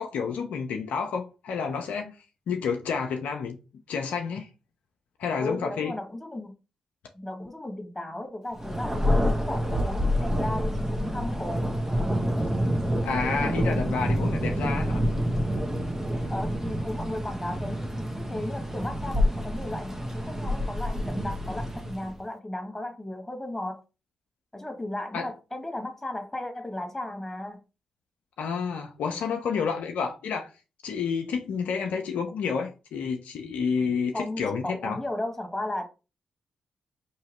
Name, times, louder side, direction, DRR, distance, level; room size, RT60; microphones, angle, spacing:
voice 1, 0.0-2.2 2.5-3.6 3.9-4.5 5.2-5.9 13.0-15.0 25.1-25.3 28.4-30.5 30.8-35.0, left 5 dB, 75° left, 0.5 m, -29 dB
voice 2, 5.4-6.5 7.1-11.7 16.3-23.8 24.5-27.6 34.1-35.9, left 1 dB, 10° left, 1.6 m, -35 dB
Thunder, 8.6-22.2, equal, 15° right, 1.0 m, -27 dB
4.7 x 2.9 x 3.0 m
supercardioid pair, 40°, 2 cm